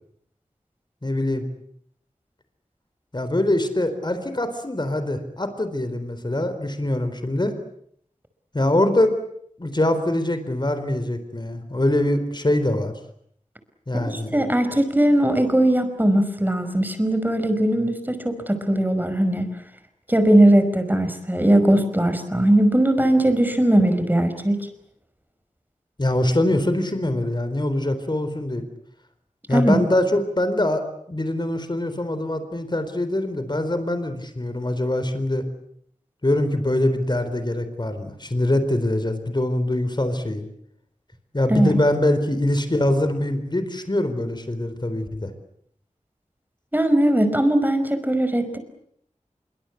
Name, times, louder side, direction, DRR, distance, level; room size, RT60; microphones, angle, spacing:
voice 1, 1.0-1.4 3.1-7.6 8.5-9.2 9.6-12.9 13.9-14.3 26.0-28.6 29.5-35.4 36.2-40.5 41.3-45.3, left 1 dB, 35° left, 10 dB, 3.9 m, -23 dB
voice 2, 13.9-19.5 20.1-24.6 29.5-29.8 41.5-41.8 46.7-48.6, right 1 dB, 15° right, 9 dB, 5.3 m, -19 dB
26.5 x 24.0 x 8.5 m, 0.69 s
wide cardioid pair, 60°, 13 cm